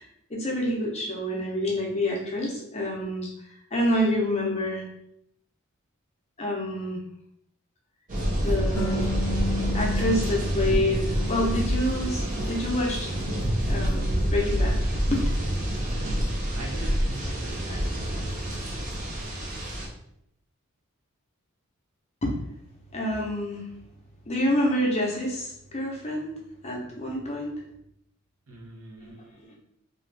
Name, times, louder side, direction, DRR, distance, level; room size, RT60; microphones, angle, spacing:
voice 1, 0.0-4.8 6.4-7.0 8.4-9.1 9.7-13.1 13.7-14.8 15.1-15.3 22.2-22.4 22.9-23.7 24.3-26.3 26.6-27.6 29.0-29.6, left 1 dB, 30° left, -2 dB, 0.6 m, -28 dB
sound 1, 8.1-19.9, equal, 35° right, 0.5 m, -27 dB
Harp, 8.8-12.1 12.5-13.6, left 2 dB, 80° left, 0.5 m, -34 dB
voice 2, 16.6-18.5 28.5-29.2, right 2 dB, 75° right, -1 dB, 0.7 m, -42 dB
2.5 x 2.4 x 3.3 m, 0.76 s
head